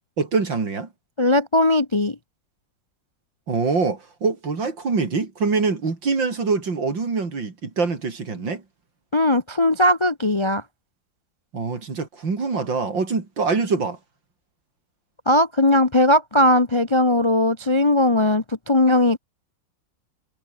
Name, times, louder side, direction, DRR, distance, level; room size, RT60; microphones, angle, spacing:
voice 1, 0.2-0.9 3.5-8.6 11.5-14.0, right 4 dB, 80° right, 4.2 m, -24 dB
voice 2, 1.2-2.2 9.1-10.6 15.3-19.2, left 1 dB, 25° left, 0.6 m, -18 dB
omnidirectional pair, 2.0 m